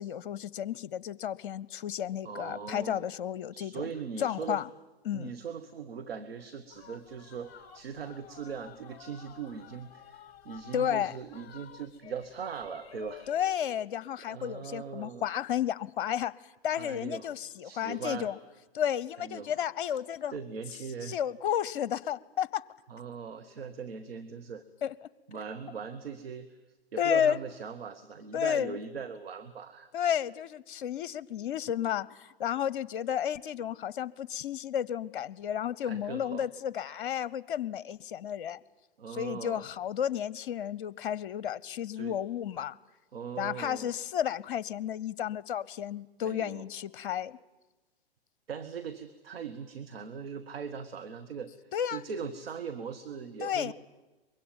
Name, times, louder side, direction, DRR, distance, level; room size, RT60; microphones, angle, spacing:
voice 1, 0.0-3.9 4.2-4.7 5.0-5.3 10.7-11.1 13.3-16.3 16.6-18.4 18.7-20.3 21.1-22.7 24.8-25.1 27.0-27.4 28.3-28.8 29.9-38.6 39.1-42.8 43.4-47.4 51.7-52.0 53.4-53.7, left 9 dB, 55° left, 22 dB, 0.8 m, -32 dB
voice 2, 2.2-3.1 3.5-4.6 5.1-13.3 14.3-15.3 16.8-17.3 17.6-18.3 19.2-19.5 19.8-20.0 20.3-21.2 22.9-24.6 25.3-26.5 26.9-29.9 35.8-36.5 39.0-39.6 41.9-42.1 43.1-43.9 46.2-46.6 48.5-51.5 51.9-53.7, right 6 dB, 70° right, 8 dB, 1.4 m, -40 dB
sound 1, 6.7-13.6, left 10 dB, 35° left, 1.2 m, -52 dB
24.0 x 22.5 x 9.0 m, 1.1 s
figure-of-eight pair, 115°, 31 cm